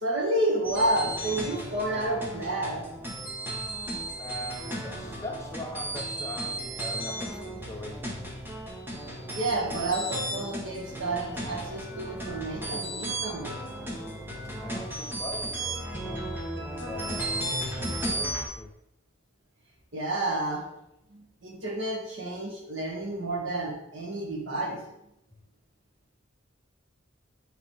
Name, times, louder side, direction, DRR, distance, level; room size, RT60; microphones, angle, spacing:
voice 1, 0.0-2.8 9.3-13.6 19.9-20.6 21.1-24.8, right 1 dB, 80° right, -1 dB, 1.7 m, -30 dB
sound 1, 0.6-18.4, right 1 dB, 10° right, 1.0 m, -35 dB
voice 2, 4.2-8.1 14.6-16.3 16.8-18.8, left 1 dB, 15° left, 2 dB, 0.7 m, -41 dB
8.2 x 4.2 x 3.4 m, 0.85 s
head